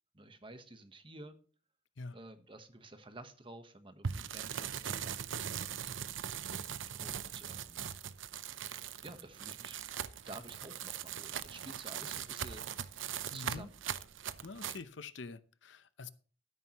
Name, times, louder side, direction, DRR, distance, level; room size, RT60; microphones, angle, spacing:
voice 1, 0.1-1.4 2.1-5.5 6.9-7.8 9.0-9.8 10.3-13.7, right 2 dB, 25° right, 1.1 m, -51 dB
sound 1, 4.0-14.8, right 8 dB, 75° right, 0.7 m, -40 dB
voice 2, 13.3-13.7 14.4-16.1, left 3 dB, 70° left, 0.8 m, -46 dB
13.0 x 10.5 x 3.0 m
head